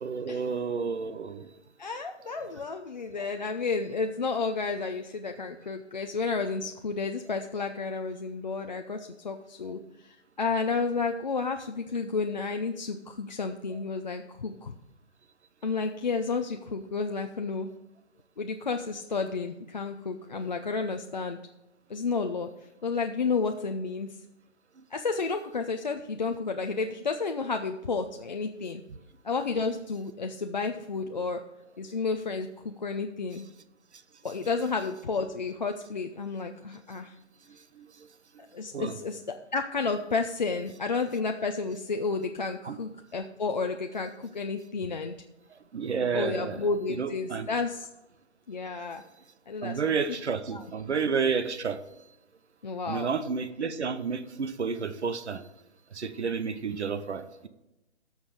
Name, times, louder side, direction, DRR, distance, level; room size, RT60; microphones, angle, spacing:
voice 1, 0.0-1.5 2.4-2.5 13.7-13.8 37.8-38.1 38.7-38.9 42.6-42.8 45.7-47.5 49.6-51.8 52.9-55.4 55.9-57.5, right 5 dB, 70° right, 11 dB, 1.1 m, -31 dB
voice 2, 1.8-14.7 15.6-17.7 18.4-21.4 21.9-22.5 22.8-24.1 24.9-28.8 29.2-31.4 31.8-33.5 34.2-37.1 38.5-45.2 46.1-47.9 48.5-49.0 49.5-50.2 50.5-50.6 52.6-53.1, left 4 dB, 40° left, 5 dB, 0.5 m, -31 dB
13.5 x 6.3 x 5.0 m, 0.95 s
hypercardioid pair, 170°, 35 cm